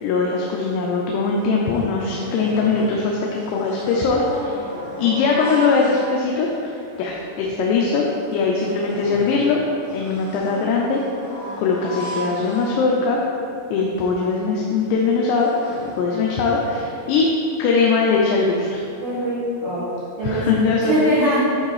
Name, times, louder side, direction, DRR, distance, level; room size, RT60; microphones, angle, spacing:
voice 1, 0.0-4.6 5.0-8.1 8.3-9.6 9.9-11.0 11.6-13.2 13.7-17.3 17.6-18.7 20.2-20.9, left 4 dB, 90° left, -2 dB, 2.9 m, -21 dB
sound 1, 1.4-3.0 3.3-6.5 7.1-7.2 7.6-7.7 8.1-13.3 13.9-14.0 14.3-14.5 14.9-16.8, equal, 60° left, 3.1 m, -35 dB
voice 2, 19.0-19.9 20.2-20.5 20.8-21.4, equal, 55° right, -10 dB, 1.7 m, -22 dB
9.9 x 3.9 x 4.8 m, 2.6 s
omnidirectional pair, 4.7 m